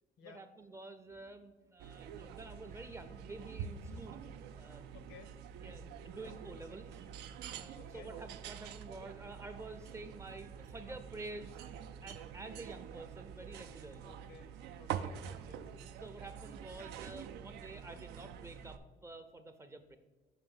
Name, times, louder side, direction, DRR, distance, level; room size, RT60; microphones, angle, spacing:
voice 1, 0.2-4.2 4.5-4.9 5.6-7.0 7.5-11.6 12.0-14.2 16.0-20.0, right 2 dB, 15° right, 8 dB, 0.5 m, -49 dB
sound 1, 1.8-18.8, right 8 dB, 85° right, 0.4 m, -46 dB
voice 2, 4.9-5.4 7.7-8.1 14.0-15.7, left 5 dB, 70° left, 9 dB, 0.7 m, -57 dB
5.8 x 3.4 x 5.4 m, 1.3 s
cardioid pair, 110°, 17 cm